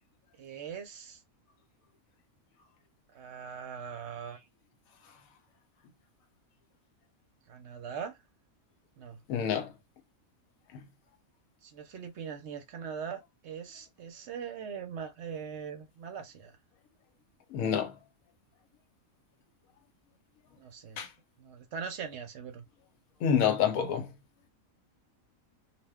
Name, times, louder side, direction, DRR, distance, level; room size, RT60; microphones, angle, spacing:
voice 1, 0.4-1.2 3.1-4.5 7.5-8.2 9.0-9.2 11.6-16.6 20.6-21.0 21.4-22.6, right 7 dB, 65° right, 0.8 m, -41 dB
voice 2, 9.3-9.7 10.7-10.8 17.5-17.9 21.0-21.1 23.2-24.1, left 8 dB, 85° left, 1.1 m, -28 dB
2.4 x 2.1 x 3.4 m
omnidirectional pair, 1.4 m